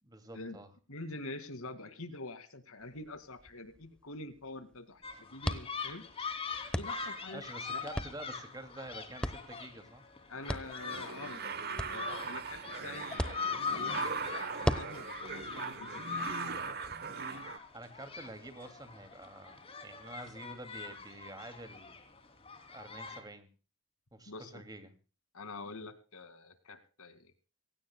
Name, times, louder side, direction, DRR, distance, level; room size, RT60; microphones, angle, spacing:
voice 1, 0.0-0.7 7.3-10.0 17.7-22.0 22.7-23.5 24.1-24.9, right 1 dB, 20° right, 8 dB, 2.4 m, -48 dB
voice 2, 0.9-6.0 6.7-7.4 7.7-7.8 10.3-11.4 11.9-17.4 24.3-24.6 25.3-27.3, left 2 dB, 85° left, 11 dB, 2.3 m, -46 dB
sound 1, 2.8-17.0, equal, 5° left, 0.8 m, -41 dB
sound 2, 5.0-23.2, left 5 dB, 25° left, 2.9 m, -42 dB
sound 3, 10.4-17.6, right 5 dB, 45° right, 1.0 m, -40 dB
25.5 x 17.0 x 2.2 m, 0.35 s
head